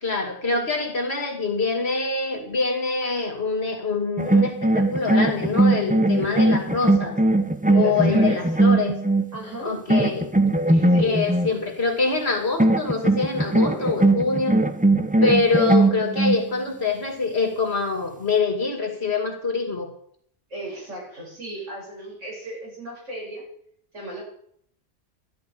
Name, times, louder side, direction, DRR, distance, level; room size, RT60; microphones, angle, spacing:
voice 1, 0.0-7.2 7.7-9.0 9.6-10.3 10.7-14.6 15.2-19.9, left 4 dB, 55° left, 3 dB, 2.7 m, -25 dB
sound 1, 4.2-9.4 9.9-11.5 12.6-16.4, right 2 dB, 10° right, 0.5 m, -20 dB
voice 2, 7.6-8.7 9.3-9.8 10.9-11.2 13.6-13.9 20.5-23.4 23.9-24.2, right 1 dB, 80° right, -3 dB, 7.9 m, -35 dB
13.5 x 11.5 x 5.1 m, 0.64 s
omnidirectional pair, 1.3 m